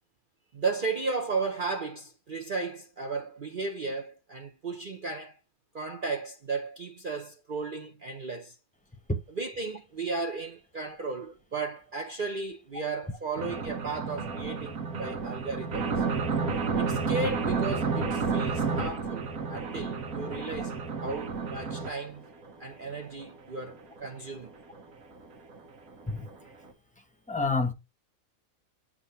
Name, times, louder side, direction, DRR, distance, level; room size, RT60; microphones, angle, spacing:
voice 1, 0.5-5.4 5.7-8.5 9.3-16.0 16.7-19.2 19.5-20.7 21.0-22.2 22.6-24.5, right 4 dB, 40° right, 0.9 m, -35 dB
sound 1, 13.4-21.9 22.5-22.6 22.9-23.0 23.2-23.3 23.6-23.7 24.0-24.1 24.8-24.9 25.2-25.3 25.5-25.6 25.9-26.0 26.3-26.4, right 4 dB, 80° right, 1.7 m, -31 dB
voice 2, 27.3-27.7, left 3 dB, 5° left, 0.9 m, -27 dB
8.4 x 2.8 x 5.6 m
omnidirectional pair, 1.5 m